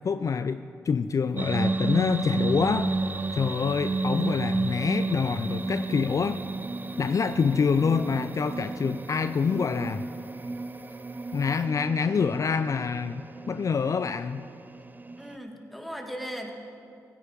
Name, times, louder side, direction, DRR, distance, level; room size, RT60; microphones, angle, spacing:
voice 1, 0.0-2.9 3.3-6.4 7.0-10.0 11.3-14.4, left 5 dB, 50° left, 11 dB, 0.4 m, -26 dB
sound 1, 1.0-11.6, right 3 dB, 55° right, 3.5 m, -57 dB
sound 2, 1.4-15.4, right 3 dB, 25° right, 0.5 m, -32 dB
voice 2, 15.2-16.5, equal, ahead, 2 dB, 2.3 m, -37 dB
16.5 x 9.8 x 5.2 m, 2.5 s
supercardioid pair, 45°, 7 cm